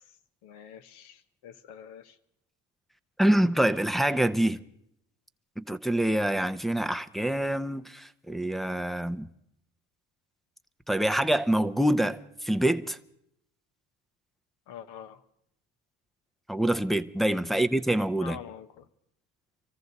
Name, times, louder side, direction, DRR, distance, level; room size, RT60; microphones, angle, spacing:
voice 1, 0.4-2.2 14.7-15.2 17.5-17.7 18.2-18.9, left 9 dB, 80° left, 1.1 m, -45 dB
voice 2, 3.2-4.6 5.6-9.3 10.9-13.0 16.5-18.4, right 1 dB, ahead, 0.6 m, -26 dB
24.5 x 14.5 x 4.0 m
supercardioid pair, 80°, 39 cm